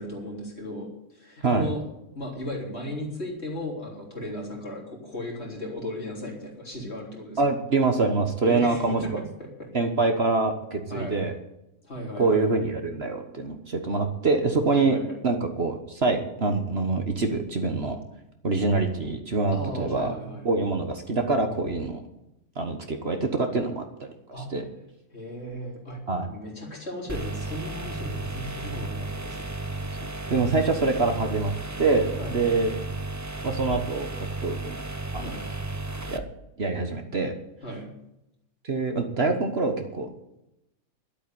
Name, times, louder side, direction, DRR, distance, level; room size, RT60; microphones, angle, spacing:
voice 1, 0.0-1.8 2.1-7.5 8.4-9.7 10.9-11.2 11.8-12.5 14.7-15.2 19.5-20.4 24.3-24.5 25.1-29.5 32.2-32.5 35.2-35.5 37.6-37.9, left 1 dB, 45° left, -1 dB, 3.9 m, -36 dB
voice 2, 7.4-9.2 9.7-11.3 12.2-15.0 15.2-18.0 18.4-20.1 20.4-22.0 22.6-23.8 24.5-24.6 26.1-26.3 30.3-31.5 31.8-32.7 33.4-34.8 35.1-35.3 36.1-36.2 36.6-37.3 38.6-40.1, right 3 dB, 45° right, 5 dB, 1.5 m, -25 dB
sound 1, 27.1-36.2, right 2 dB, 15° right, 0.6 m, -34 dB
11.5 x 8.7 x 9.4 m, 0.87 s
omnidirectional pair, 1.5 m